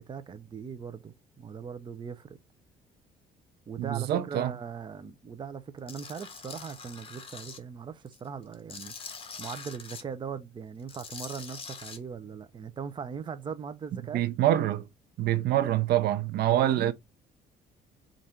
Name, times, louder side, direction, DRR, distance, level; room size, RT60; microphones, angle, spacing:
voice 1, 0.0-2.4 3.7-8.9 9.4-14.2 16.5-16.9, right 6 dB, 30° right, 0.6 m, -40 dB
voice 2, 3.8-4.5 14.1-14.9 15.2-16.9, right 12 dB, 70° right, 0.7 m, -25 dB
Tools, 5.9-7.6 8.1-10.0 10.8-12.0, left 5 dB, 35° left, 1.1 m, -43 dB
4.8 x 2.6 x 4.3 m
cardioid pair, 110°, 17 cm